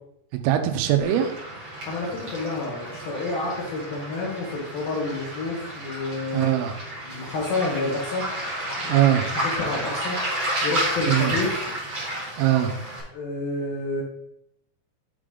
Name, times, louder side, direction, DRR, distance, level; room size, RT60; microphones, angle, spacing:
voice 1, 0.3-1.3 6.3-6.8 8.9-9.3 11.1-11.3 12.4-12.7, right 11 dB, 90° right, 7 dB, 3.4 m, -21 dB
Waves surf, 1.0-13.0, right 1 dB, 60° right, 1.3 m, -31 dB
voice 2, 1.8-6.5 7.0-8.3 8.8-9.1 9.6-10.2 10.6-11.6 13.1-14.0, left 2 dB, 60° left, -2 dB, 2.7 m, -29 dB
7.4 x 5.0 x 3.8 m, 0.77 s
omnidirectional pair, 5.9 m